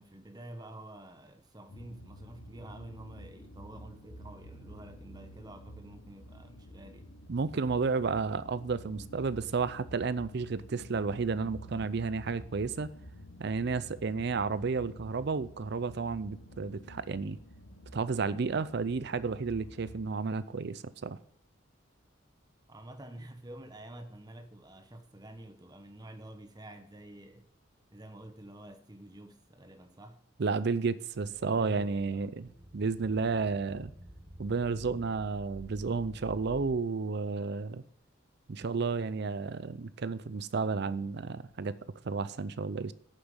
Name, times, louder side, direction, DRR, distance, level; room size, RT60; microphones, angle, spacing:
voice 1, 0.0-7.1 22.7-27.5 27.9-30.2 31.5-32.3, right 1 dB, 20° right, 1.1 m, -49 dB
sound 1, 1.7-20.0, equal, 90° left, 1.2 m, -50 dB
voice 2, 7.3-12.9 13.4-17.4 17.9-21.2 30.4-32.5 32.7-33.9 34.4-37.8 38.5-41.8 42.0-42.9, right 4 dB, 55° right, 0.5 m, -32 dB
sound 2, 31.2-36.8, equal, 30° left, 3.5 m, -51 dB
9.2 x 7.1 x 7.3 m
head